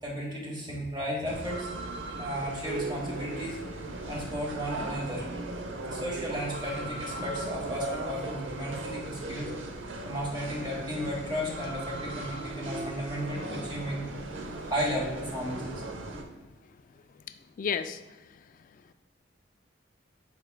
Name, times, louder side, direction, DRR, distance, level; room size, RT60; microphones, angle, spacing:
voice 1, 0.0-1.7 2.1-3.6 4.1-5.3 5.8-9.5 10.0-14.0 14.6-15.8, equal, 25° right, -4 dB, 1.3 m, -34 dB
sound 1, 1.2-16.2, right 2 dB, 85° right, 0.8 m, -38 dB
sound 2, 2.4-6.3 7.0-7.1 12.3-16.6, right 3 dB, 45° right, 0.5 m, -44 dB
voice 2, 16.7-18.9, left 6 dB, 45° left, 10 dB, 0.3 m, -37 dB
9.8 x 4.7 x 2.2 m, 1.1 s
head